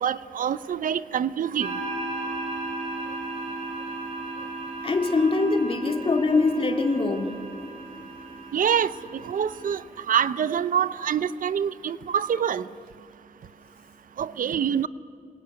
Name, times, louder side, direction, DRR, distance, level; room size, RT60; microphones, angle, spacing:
voice 1, 0.0-1.8 8.5-12.7 14.2-14.9, right 8 dB, 75° right, 16 dB, 0.6 m, -26 dB
sound 1, 1.6-9.8, right 2 dB, 50° right, 4.9 m, -35 dB
voice 2, 2.3-2.6 4.8-7.4 12.1-12.2, left 3 dB, 40° left, 5 dB, 2.2 m, -24 dB
26.5 x 22.0 x 9.5 m, 2.4 s
wide cardioid pair, 160°, 14 cm